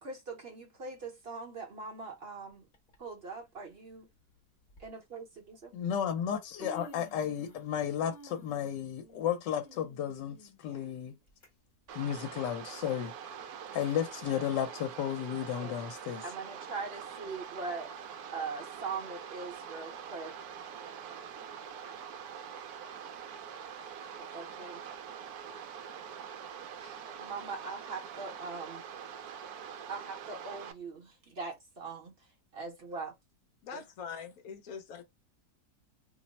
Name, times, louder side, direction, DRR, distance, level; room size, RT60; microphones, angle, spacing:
voice 1, 0.0-2.7 3.0-4.1 4.8-5.7 10.6-10.9 15.6-15.7 16.2-17.9 18.3-20.3 24.3-24.8 26.8-28.8 29.9-32.2 32.5-33.1 33.7-33.9, right 4 dB, 45° right, 0.8 m, -41 dB
Human voice, 2.7-3.0 4.0-4.1 4.7-4.9 5.9-6.0 6.3-7.7 8.0-11.5 11.9-12.0 12.8-12.9, right 1 dB, 35° left, 1.1 m, -53 dB
voice 2, 5.7-11.2 11.9-13.1 13.7-16.2, left 9 dB, 80° left, 1.3 m, -33 dB
sound 1, 11.9-30.7, right 7 dB, 70° right, 1.0 m, -44 dB
voice 3, 33.6-35.0, left 6 dB, 65° left, 1.0 m, -43 dB
3.0 x 2.0 x 4.0 m
omnidirectional pair, 1.9 m